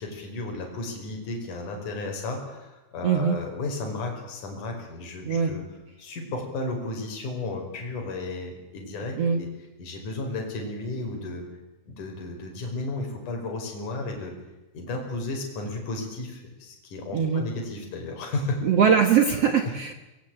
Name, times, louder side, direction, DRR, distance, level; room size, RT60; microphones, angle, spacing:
voice 1, 0.0-5.6 6.0-9.5 9.8-11.5 11.9-14.3 14.7-18.6 19.7-19.8, left 2 dB, 50° left, 2 dB, 6.2 m, -33 dB
voice 2, 3.0-3.4 5.3-5.5 9.2-9.4 17.1-17.4 18.6-19.9, right 7 dB, 65° right, 8 dB, 1.5 m, -21 dB
24.0 x 21.5 x 9.0 m, 1.0 s
omnidirectional pair, 4.7 m